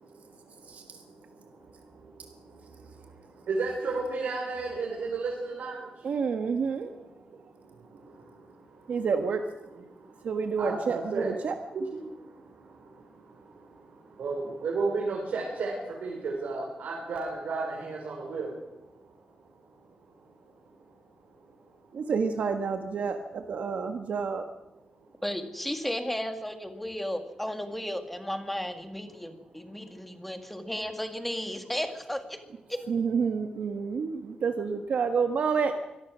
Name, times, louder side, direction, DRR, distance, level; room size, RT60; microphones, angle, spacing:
voice 1, 0.0-6.1 6.6-6.7 7.3-9.0 9.9-10.3 10.6-11.4 11.9-21.9 25.0-25.2 29.2-30.2 34.0-34.1, right 3 dB, 85° right, -2 dB, 5.1 m, -36 dB
voice 2, 0.6-1.0 6.0-6.9 7.7-7.8 8.9-9.4 10.2-11.6 21.9-24.4 32.9-35.7, right 5 dB, 65° right, 6 dB, 1.4 m, -29 dB
voice 3, 25.2-32.4 32.7-32.8, equal, 5° left, 7 dB, 1.8 m, -34 dB
24.5 x 18.0 x 6.3 m, 0.96 s
wide cardioid pair, 180°, 3 cm